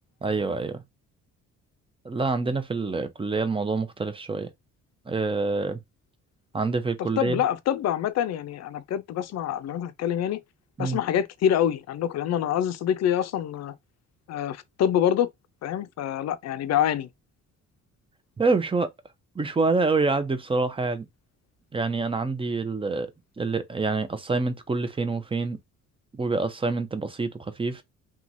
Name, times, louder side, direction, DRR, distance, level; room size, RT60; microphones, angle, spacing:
voice 1, 0.2-0.8 2.0-4.5 5.1-5.8 6.5-7.4 10.8-11.0 18.4-18.9 19.4-21.1 21.7-23.1 23.4-25.6 26.1-27.8, right 3 dB, 20° right, 0.5 m, -26 dB
voice 2, 7.0-10.4 10.8-13.7 14.3-15.3 15.6-17.1, left 10 dB, 60° left, 0.5 m, -26 dB
2.9 x 2.4 x 2.6 m
cardioid pair, 90°, 30 cm